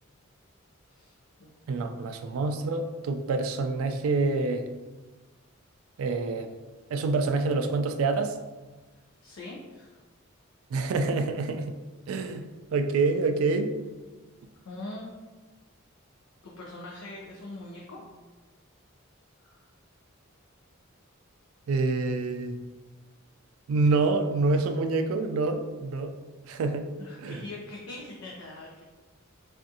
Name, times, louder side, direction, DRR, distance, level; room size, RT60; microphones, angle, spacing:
voice 1, 1.7-4.7 6.0-6.5 6.9-8.4 10.7-11.7 12.1-13.7 21.7-22.5 23.7-26.1 26.4-26.9 27.2-27.4, right 3 dB, 85° right, 7 dB, 0.3 m, -27 dB
voice 2, 9.2-10.0 14.6-15.1 16.4-18.0 19.4-19.7 27.0-28.8, left 2 dB, 75° left, -3 dB, 0.5 m, -42 dB
3.5 x 2.4 x 2.7 m, 1.3 s
head